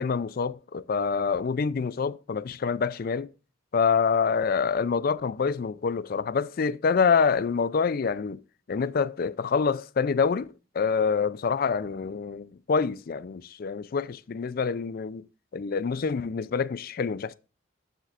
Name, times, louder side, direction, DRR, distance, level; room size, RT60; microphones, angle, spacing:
voice 1, 0.0-3.3 3.7-8.4 8.7-10.5 10.7-15.3 15.5-17.3, left 5 dB, 45° left, 0.4 m, -26 dB
13.5 x 7.4 x 2.4 m
head